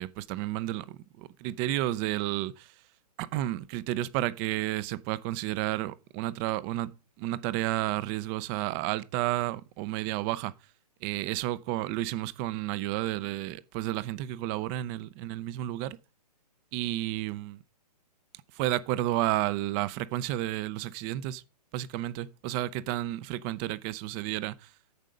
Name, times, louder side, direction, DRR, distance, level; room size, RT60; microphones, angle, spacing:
voice 1, 0.0-2.7 3.2-10.5 11.0-16.0 16.7-17.6 18.5-21.4 21.7-24.7, right 15 dB, 20° right, 0.4 m, -31 dB
9.3 x 6.5 x 5.0 m
hypercardioid pair, 145°, 21 cm